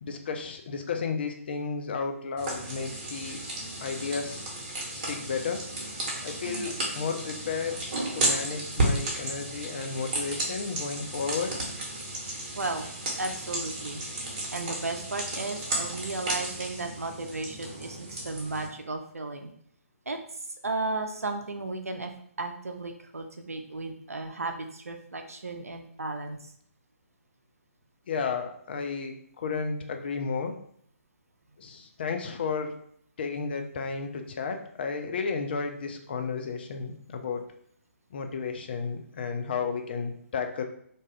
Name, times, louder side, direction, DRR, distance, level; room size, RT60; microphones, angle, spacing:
voice 1, 0.0-3.4 3.8-5.6 6.2-7.8 8.1-11.5 28.1-30.6 31.6-32.7 33.2-37.4 38.1-40.6, left 5 dB, 40° left, 5 dB, 0.4 m, -33 dB
sound 1, 2.4-18.7, right 1 dB, 35° right, 0.9 m, -33 dB
voice 2, 6.2-6.7 12.5-12.9 13.2-14.0 14.5-19.5 20.1-20.2 20.6-22.1 22.4-26.4, right 3 dB, 75° right, 5 dB, 0.4 m, -34 dB
2.6 x 2.3 x 3.2 m, 0.65 s
figure-of-eight pair, 135°, 8 cm